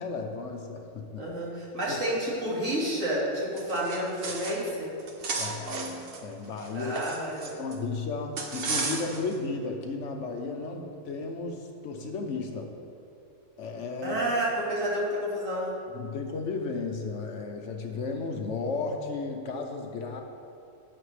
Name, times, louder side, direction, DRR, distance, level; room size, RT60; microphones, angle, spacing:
voice 1, 0.0-1.3 1.9-2.0 5.4-6.9 7.6-12.7 13.6-14.2 15.9-20.2, left 4 dB, 65° left, 3 dB, 1.0 m, -34 dB
voice 2, 1.2-4.9 6.7-7.6 14.0-15.7, right 1 dB, 65° right, -6 dB, 2.4 m, -30 dB
sound 1, 3.6-4.7 5.0-7.8 8.4-9.3, right 4 dB, 50° right, 0.9 m, -34 dB
10.5 x 8.2 x 3.2 m, 2.6 s
omnidirectional pair, 1.4 m